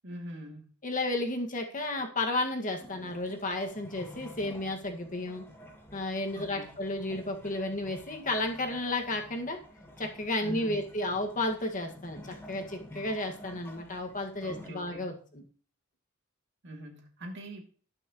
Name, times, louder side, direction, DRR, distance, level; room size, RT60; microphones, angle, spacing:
voice 1, 0.0-0.7 6.3-6.8 10.4-10.8 14.4-15.2 16.6-17.6, right 1 dB, 60° right, 1 dB, 2.6 m, -43 dB
voice 2, 0.8-5.5 5.9-9.6 10.0-15.4, left 2 dB, 40° left, 3 dB, 1.8 m, -32 dB
sound 1, 2.8-14.7, left 1 dB, 10° left, 1.5 m, -50 dB
18.0 x 6.3 x 3.1 m, 0.43 s
head